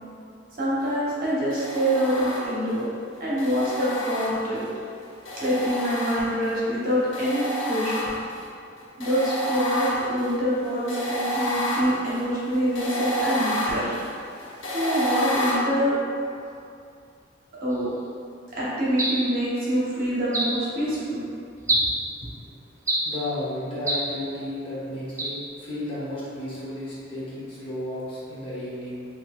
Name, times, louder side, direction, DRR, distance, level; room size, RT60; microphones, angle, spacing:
voice 1, 0.6-2.8 3.2-4.6 5.4-8.0 9.0-13.9 14.7-15.9 17.6-17.9 18.5-21.2, equal, 50° right, -9 dB, 0.9 m, -25 dB
sound 1, 1.5-2.8 3.4-4.7 5.2-6.6 7.1-8.4 9.0-15.6, equal, 75° left, 0.7 m, -30 dB
sound 2, 19.0-19.3 20.3-20.6 21.7-22.0 22.9-23.2 23.9-24.1 25.2-25.4, right 1 dB, 15° right, 0.3 m, -25 dB
voice 2, 23.0-29.1, left 1 dB, 30° left, -10 dB, 0.8 m, -33 dB
3.9 x 2.8 x 2.2 m, 2.4 s
head